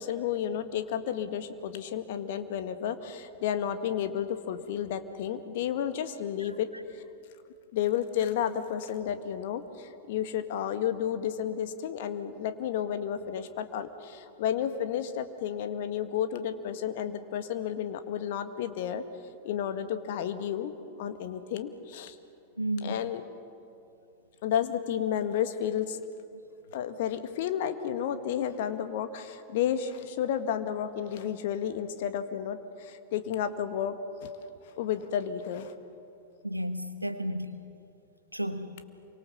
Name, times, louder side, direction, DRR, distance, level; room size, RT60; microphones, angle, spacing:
voice 1, 0.0-6.7 6.9-7.0 7.7-19.0 19.4-20.7 21.0-22.2 22.8-23.2 24.4-26.0 26.7-34.3 34.6-35.7, left 9 dB, 55° left, 1.7 m, -32 dB
voice 2, 22.6-23.0 26.3-26.5 34.4-34.5 36.4-37.6 38.3-38.7, right 1 dB, 85° right, 1.4 m, -33 dB
28.0 x 24.5 x 7.1 m
figure-of-eight pair, 90°, 0 cm